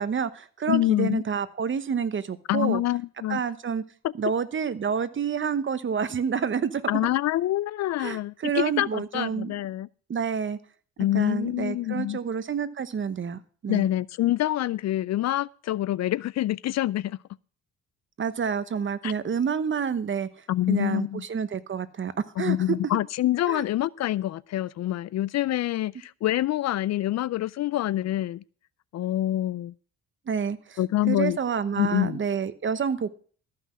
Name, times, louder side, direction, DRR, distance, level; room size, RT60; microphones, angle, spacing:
voice 1, 0.0-2.8 3.3-3.8 4.2-6.8 8.0-9.5 10.1-10.6 11.1-13.9 18.2-20.3 20.7-22.8 23.5-23.6 30.3-30.8 31.1-33.1, right 6 dB, 40° right, 1.0 m, -28 dB
voice 2, 0.7-1.2 2.5-3.4 4.0-4.1 6.9-9.9 11.0-12.2 13.7-17.2 19.0-19.1 20.5-21.2 22.4-28.4 28.9-29.7 30.8-31.4 31.8-32.2, left 14 dB, 60° left, 0.5 m, -26 dB
14.0 x 5.8 x 7.4 m
cardioid pair, 90°, 30 cm